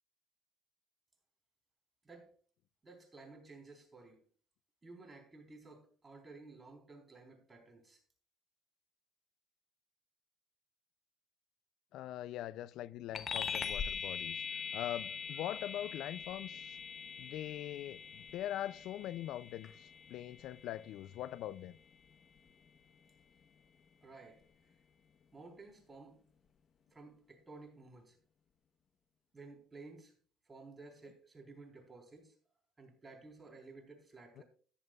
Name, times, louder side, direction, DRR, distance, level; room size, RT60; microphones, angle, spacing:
voice 1, 2.8-4.2 4.8-8.0 24.0-24.8 25.3-26.2 26.9-28.2 29.3-30.2 30.5-32.4 32.8-34.4, right 3 dB, 25° right, 4.0 m, -54 dB
voice 2, 11.9-16.8 17.2-21.8 34.4-34.5, left 12 dB, 70° left, 0.4 m, -42 dB
sound 1, 13.1-23.0, left 6 dB, 45° left, 1.0 m, -43 dB
14.0 x 10.5 x 2.4 m
supercardioid pair, 90°, 0 cm